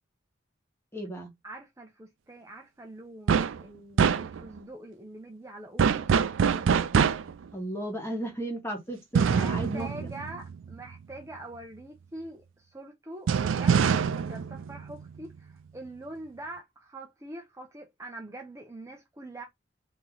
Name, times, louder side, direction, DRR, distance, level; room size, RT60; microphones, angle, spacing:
voice 1, 0.9-1.3 7.5-10.1, right 1 dB, 15° left, 1.2 m, -35 dB
voice 2, 1.4-6.2 9.1-19.4, right 2 dB, 15° right, 0.6 m, -44 dB
sound 1, 3.3-3.6 4.0-4.6 5.8-7.4 9.2-11.0 13.3-15.4, right 6 dB, 85° right, 0.4 m, -25 dB
3.0 x 2.8 x 3.7 m
head